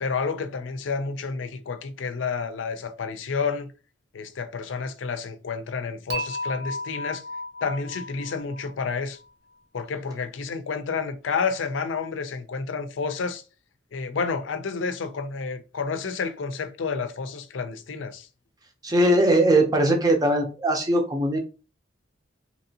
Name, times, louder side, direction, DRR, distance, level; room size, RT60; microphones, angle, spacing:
voice 1, 0.0-3.7 4.1-7.2 7.6-9.2 9.7-13.4 13.9-18.3, left 5 dB, 85° left, 0.5 m, -30 dB
Dishes pots and pans / Chink clink, 6.1-9.2, left 1 dB, 60° right, 0.6 m, -34 dB
voice 2, 18.8-21.4, right 1 dB, 20° right, 0.6 m, -20 dB
2.9 x 2.6 x 2.7 m
head